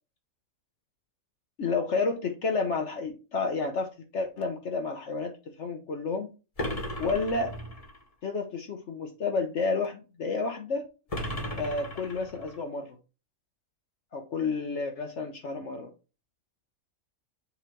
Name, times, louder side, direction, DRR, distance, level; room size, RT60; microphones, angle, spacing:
voice 1, 1.6-6.3 7.0-7.5 8.2-10.8 11.6-13.0 14.1-15.9, left 4 dB, 60° left, 4 dB, 1.1 m, -30 dB
sound 1, 6.6-8.0 11.1-12.6, equal, 25° left, 1.3 m, -35 dB
6.8 x 3.1 x 4.5 m, 0.32 s
omnidirectional pair, 1.5 m